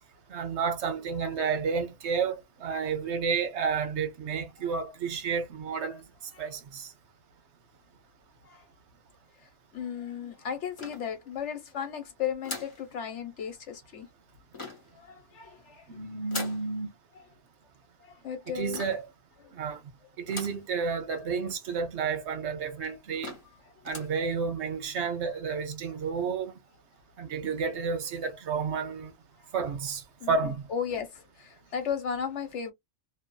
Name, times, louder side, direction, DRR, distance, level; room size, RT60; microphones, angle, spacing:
voice 1, 0.3-6.0 6.4-6.9 15.9-16.9 18.5-19.1 19.6-19.8 20.2-23.4 23.8-26.5 27.2-29.1 29.5-30.0 30.3-30.7, right 5 dB, 60° right, 1.0 m, -31 dB
voice 2, 9.7-14.1 15.0-15.8 18.0-18.8 30.2-32.7, left 7 dB, 60° left, 1.3 m, -35 dB
sound 1, 10.8-11.5 12.4-12.9 14.5-15.0 16.3-16.7 18.7-19.1 20.3-20.7 21.2-21.3 21.5-21.6 22.3-22.4 22.8-22.9 23.2-23.6 23.8-24.2, left 2 dB, 25° left, 1.0 m, -40 dB
2.6 x 2.6 x 2.3 m
omnidirectional pair, 1.4 m